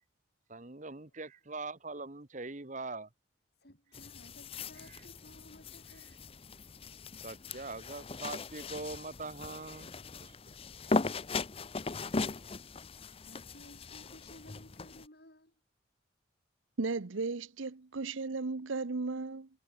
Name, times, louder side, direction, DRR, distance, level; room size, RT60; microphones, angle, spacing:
voice 1, 0.5-3.1 7.2-9.9 10.2-10.3, right 3 dB, 40° right, 1.3 m, -42 dB
voice 2, 3.6-6.2 13.2-15.5, left 1 dB, 55° left, 7.7 m, -57 dB
sound 1, 3.9-15.1, left 3 dB, 30° left, 0.6 m, -39 dB
voice 3, 16.8-19.5, right 3 dB, 85° right, 0.8 m, -35 dB
head